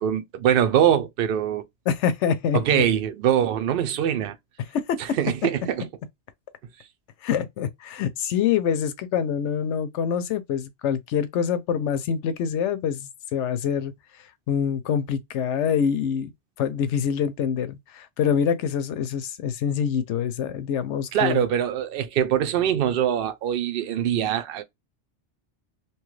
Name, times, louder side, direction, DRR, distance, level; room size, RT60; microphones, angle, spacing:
voice 1, 0.0-1.6 2.5-4.4 5.0-5.8 21.1-24.6, right 9 dB, 60° right, 0.7 m, -23 dB
voice 2, 1.9-2.8 4.7-5.0 7.2-13.9 14.5-16.3 16.6-21.4, left 8 dB, 80° left, 0.9 m, -25 dB
3.0 x 2.3 x 3.1 m
omnidirectional pair, 1.2 m